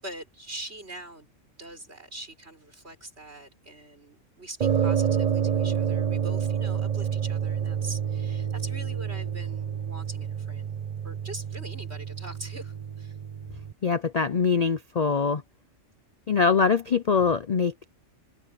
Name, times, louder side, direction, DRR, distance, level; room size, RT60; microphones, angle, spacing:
voice 1, 0.0-1.3 1.6-13.2, right 1 dB, 55° right, 6.5 m, -43 dB
sound 1, 4.6-13.7, right 8 dB, 40° right, 0.7 m, -28 dB
voice 2, 13.8-15.4 16.3-17.9, left 5 dB, 45° left, 0.6 m, -23 dB
omnidirectional pair, 1.3 m